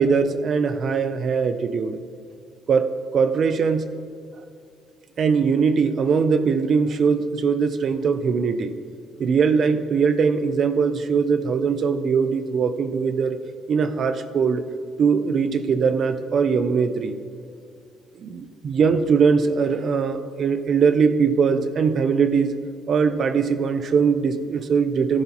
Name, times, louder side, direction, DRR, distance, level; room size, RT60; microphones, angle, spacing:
voice 1, 0.0-2.0 2.7-2.9 3.1-3.9 5.2-8.7 9.2-13.4 13.7-14.6 15.0-17.2 18.2-22.6 22.9-25.2, right 5 dB, 35° right, 10 dB, 0.5 m, -21 dB
15.0 x 11.0 x 3.0 m, 2.4 s
cardioid pair, 170°, 0 cm